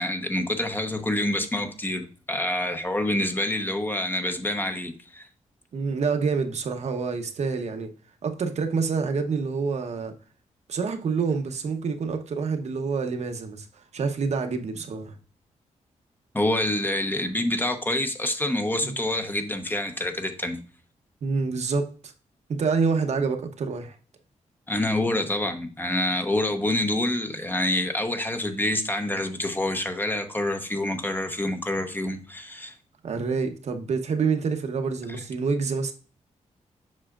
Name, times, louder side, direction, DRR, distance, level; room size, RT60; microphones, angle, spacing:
voice 1, 0.0-5.3 16.3-20.6 24.7-32.7, left 1 dB, 15° left, 0.8 m, -27 dB
voice 2, 5.7-7.9 8.2-10.1 10.7-15.1 18.8-19.0 21.2-22.1 22.5-23.9 33.0-35.9, right 5 dB, 60° right, 0.9 m, -27 dB
7.4 x 5.6 x 2.4 m
wide cardioid pair, 110°, 13 cm